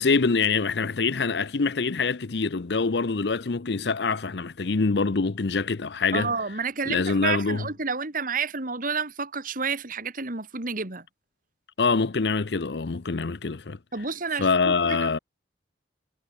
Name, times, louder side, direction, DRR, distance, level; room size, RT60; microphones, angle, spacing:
voice 1, 0.0-6.3 6.9-7.6 11.8-13.8 14.4-15.2, left 4 dB, 65° left, 0.7 m, -25 dB
voice 2, 6.1-11.1 13.9-15.2, right 5 dB, 50° right, 2.6 m, -30 dB
head